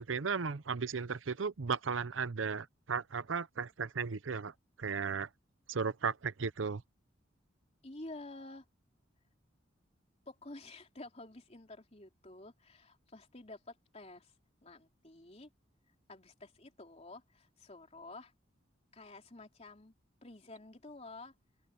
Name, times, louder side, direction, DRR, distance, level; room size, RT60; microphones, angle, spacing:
voice 1, 0.0-4.5 4.8-5.3 5.7-6.8, right 5 dB, 90° right, 0.7 m, -35 dB
voice 2, 7.8-8.6 10.2-14.3 14.6-15.5 16.1-18.3 18.9-19.9 20.2-21.3, left 2 dB, 35° left, 3.4 m, -50 dB
open air
head